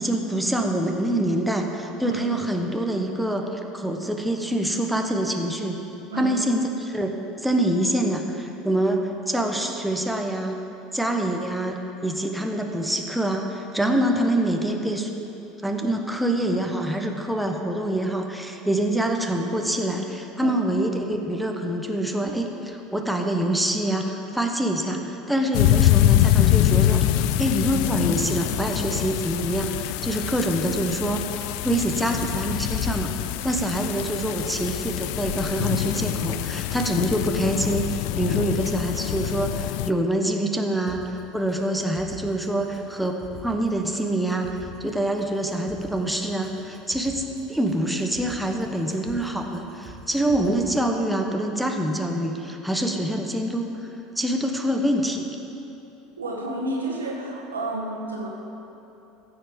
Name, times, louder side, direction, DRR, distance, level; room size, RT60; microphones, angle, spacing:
voice 1, 0.0-5.8 6.1-10.5 10.9-15.1 15.6-33.1 33.4-44.5 44.8-47.2 47.5-53.7 54.2-55.2, right 1 dB, ahead, 2 dB, 1.1 m, -25 dB
sound 1, 25.5-39.9, left 14 dB, 65° left, 0.3 m, -24 dB
sound 2, 40.9-50.7, right 3 dB, 35° right, 2.4 m, -46 dB
voice 2, 56.2-58.3, right 2 dB, 90° right, -1 dB, 1.6 m, -30 dB
14.5 x 6.9 x 5.2 m, 3.0 s
hypercardioid pair, 75°, 0 cm